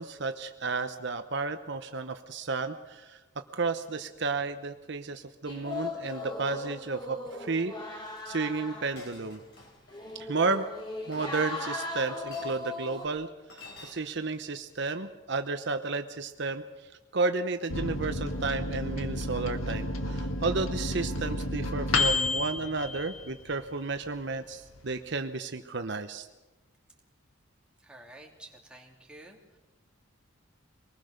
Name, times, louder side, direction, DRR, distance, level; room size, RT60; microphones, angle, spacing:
voice 1, 0.0-3.2 3.5-7.7 8.3-9.4 10.2-10.7 11.1-13.3 13.5-16.6 17.1-26.3, right 3 dB, 55° right, 8 dB, 0.9 m, -32 dB
sound 1, 5.5-13.1, left 3 dB, 20° left, 3.5 m, -38 dB
Chink clink, 8.1-8.3 9.0-10.0 11.0-11.8 12.3-12.7 13.5-13.9, left 2 dB, 55° left, 5.4 m, -49 dB
Microwave oven, 17.7-23.8 24.2-24.3 24.5-25.2, left 2 dB, 90° left, 2.0 m, -31 dB
voice 2, 27.8-29.4, right 1 dB, 5° right, -1 dB, 3.0 m, -50 dB
24.5 x 19.5 x 6.6 m, 1.1 s
head